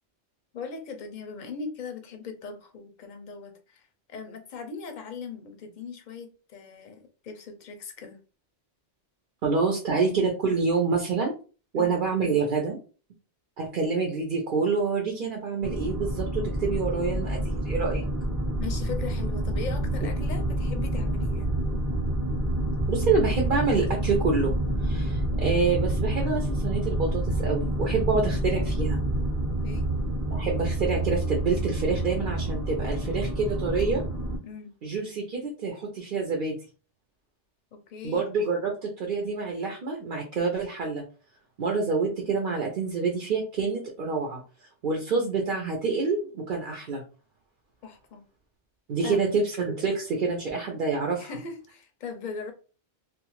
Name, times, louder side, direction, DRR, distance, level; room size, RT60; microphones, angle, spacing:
voice 1, 0.5-8.2 11.8-12.0 18.6-21.5 29.6-29.9 34.4-34.7 37.7-38.3 47.8-48.2 49.0-49.3 51.2-52.5, left 5 dB, 50° left, 6 dB, 0.6 m, -39 dB
voice 2, 9.4-11.3 11.7-12.8 13.6-18.0 22.9-24.5 24.8-29.0 30.3-34.0 34.8-36.5 38.0-41.0 41.6-44.4 44.8-47.0 48.9-51.3, right 4 dB, 55° right, 0 dB, 0.7 m, -27 dB
sound 1, 15.6-34.4, right 1 dB, 20° right, 0.6 m, -28 dB
2.4 x 2.4 x 3.0 m, 0.36 s
omnidirectional pair, 1.2 m